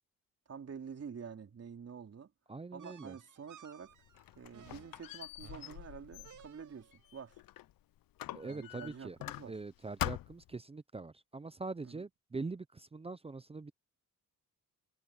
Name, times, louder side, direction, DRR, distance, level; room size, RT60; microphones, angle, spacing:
voice 1, 0.5-2.3 2.7-3.9 4.4-7.4 8.4-9.5 11.8-12.1, right 6 dB, 45° right, 3.9 m, -48 dB
voice 2, 2.5-3.2 8.3-9.2 9.5-13.7, right 3 dB, 20° right, 0.6 m, -43 dB
sound 1, 2.8-7.1, right 9 dB, 65° right, 5.7 m, -58 dB
Squeak, 3.9-7.7 8.2-9.7 10.0-10.6, left 15 dB, 80° left, 0.8 m, -43 dB
cardioid pair, 95°, 34 cm